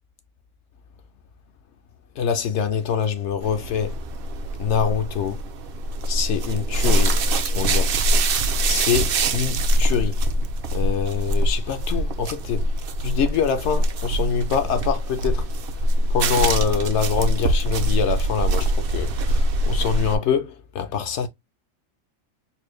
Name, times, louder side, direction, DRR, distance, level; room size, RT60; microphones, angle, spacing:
voice 1, 2.2-4.0 4.6-5.4 6.1-8.0 8.7-10.2 10.7-15.5 16.1-21.3, left 7 dB, 65° left, 0.8 m, -25 dB
sound 1, 3.4-20.2, right 1 dB, 60° right, 0.7 m, -23 dB
4.3 x 2.2 x 3.1 m
omnidirectional pair, 1.4 m